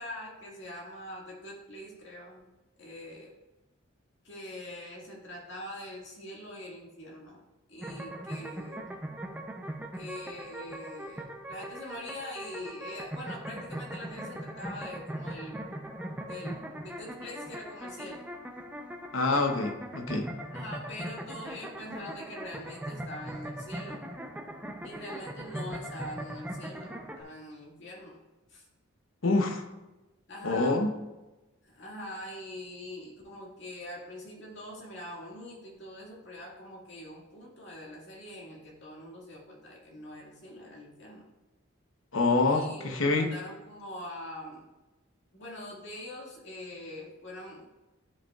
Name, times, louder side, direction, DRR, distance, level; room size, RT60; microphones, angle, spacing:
voice 1, 0.0-2.4 2.8-3.3 4.2-7.4 7.7-8.9 9.9-15.6 16.3-18.3 20.5-24.0 24.8-28.2 28.5-28.6 30.3-30.8 31.6-41.3 42.5-44.7 45.3-47.7, left 1 dB, 60° left, -2 dB, 1.9 m, -43 dB
sound 1, 7.8-27.2, right 1 dB, 10° right, 0.6 m, -40 dB
voice 2, 19.1-20.3 29.2-29.6 30.4-30.9 42.1-43.3, left 3 dB, 75° left, 4 dB, 0.9 m, -26 dB
12.0 x 5.2 x 2.4 m, 1.1 s
head